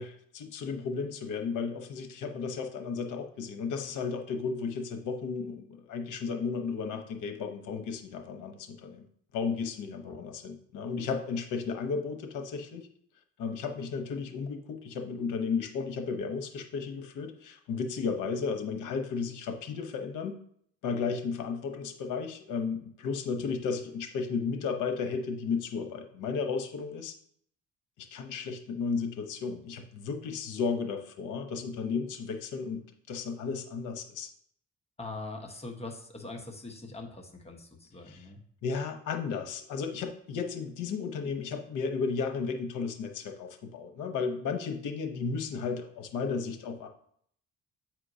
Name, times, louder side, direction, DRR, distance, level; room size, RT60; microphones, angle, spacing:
voice 1, 0.0-9.1 9.3-12.9 13.4-20.4 20.8-27.1 28.0-34.3 38.1-38.2 38.6-46.9, left 5 dB, 85° left, 6 dB, 0.9 m, -34 dB
voice 2, 35.0-38.4, left 2 dB, 20° left, 3 dB, 1.1 m, -42 dB
8.6 x 4.5 x 2.7 m, 0.65 s
cardioid pair, 90°, 30 cm